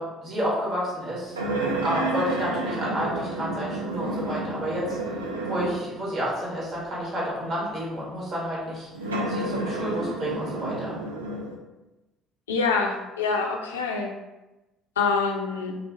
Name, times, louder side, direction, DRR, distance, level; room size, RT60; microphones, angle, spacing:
voice 1, 0.0-1.4 1.8-5.0 5.4-11.0, equal, 45° right, -5 dB, 1.4 m, -30 dB
sound 1, 1.3-6.0 6.7-6.8 8.9-11.5, right 2 dB, 90° right, 0.3 m, -30 dB
voice 2, 12.5-14.1 15.0-15.7, left 4 dB, 85° left, 2 dB, 0.3 m, -25 dB
3.2 x 2.4 x 2.5 m, 1.0 s
hypercardioid pair, 55°, 0 cm